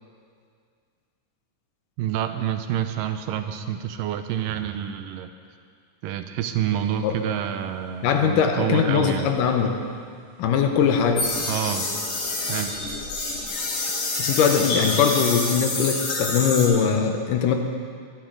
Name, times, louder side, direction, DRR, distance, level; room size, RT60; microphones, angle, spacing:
voice 1, 2.0-5.3 6.0-9.3 11.5-11.9 12.5-12.7, right 10 dB, 80° right, 8 dB, 2.3 m, -28 dB
sound 1, 6.7-7.2 7.4-16.2, left 1 dB, 30° left, 3.3 m, -44 dB
voice 2, 8.0-9.7 10.4-11.3 14.2-17.6, left 7 dB, 75° left, 4 dB, 2.4 m, -21 dB
sound 2, 11.2-16.7, left 2 dB, 60° left, 3.8 m, -27 dB
22.5 x 9.9 x 3.8 m, 2.1 s
omnidirectional pair, 3.9 m